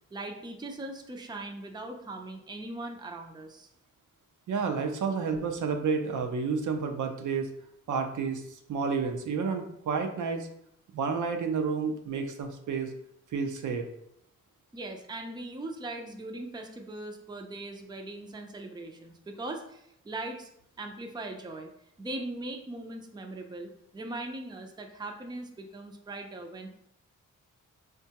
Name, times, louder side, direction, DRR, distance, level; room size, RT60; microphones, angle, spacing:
voice 1, 0.1-3.7 14.7-20.5 20.8-21.7 22.0-26.7, right 2 dB, 15° right, 3 dB, 0.4 m, -40 dB
voice 2, 4.5-7.5 7.9-10.5 10.9-12.9 13.3-13.9, right 5 dB, 70° right, 5 dB, 0.5 m, -30 dB
3.7 x 2.2 x 2.8 m, 0.73 s
cardioid pair, 65°, 31 cm